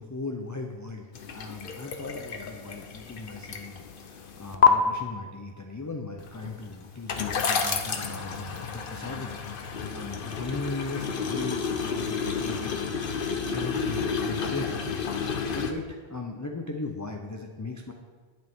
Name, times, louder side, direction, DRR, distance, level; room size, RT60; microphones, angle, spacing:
voice 1, 0.0-13.0 13.5-14.8 15.1-17.9, left 3 dB, 20° left, 2 dB, 0.5 m, -38 dB
sound 1, 1.1-4.7 6.2-15.7, left 6 dB, 60° left, 0.9 m, -30 dB
10.5 x 8.8 x 3.6 m, 1.4 s
omnidirectional pair, 1.1 m